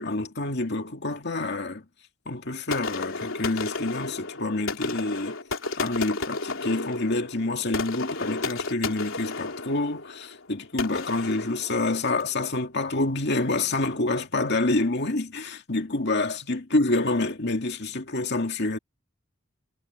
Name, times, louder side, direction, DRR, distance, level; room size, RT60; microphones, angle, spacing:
voice 1, 0.0-1.9 2.3-5.4 5.8-18.8, left 2 dB, 55° left, 2.3 m, -27 dB
sound 1, 2.7-12.4, left 3 dB, 75° left, 3.3 m, -33 dB
head